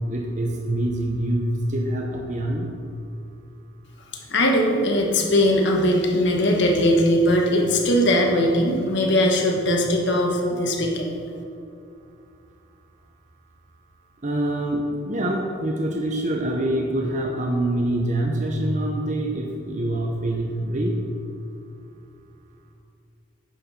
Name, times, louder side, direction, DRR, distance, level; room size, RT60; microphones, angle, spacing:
voice 1, 0.1-2.7 14.2-20.9, right 1 dB, 35° right, 1 dB, 0.8 m, -25 dB
voice 2, 4.3-11.1, left 1 dB, 55° left, 0 dB, 1.5 m, -20 dB
9.0 x 7.0 x 5.8 m, 2.5 s
head